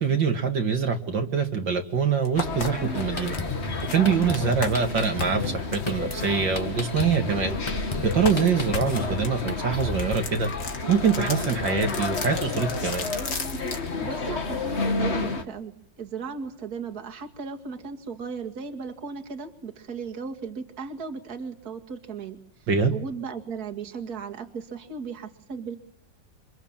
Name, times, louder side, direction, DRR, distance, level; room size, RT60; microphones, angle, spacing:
voice 1, 0.0-3.4 3.9-7.6 8.0-10.5 10.9-13.1 22.7-22.9, right 6 dB, 70° right, 4 dB, 2.7 m, -24 dB
sound 1, 1.8-1.9 2.2-7.6 8.1-13.9, left 4 dB, 75° left, 3.2 m, -36 dB
sound 2, 2.3-15.4, left 3 dB, 35° left, 1.8 m, -31 dB
Drum kit, 2.9-10.2, left 2 dB, 15° left, 1.5 m, -35 dB
voice 2, 14.0-25.8, right 5 dB, 50° right, 6 dB, 2.5 m, -36 dB
28.5 x 26.0 x 7.4 m, 0.63 s
omnidirectional pair, 2.1 m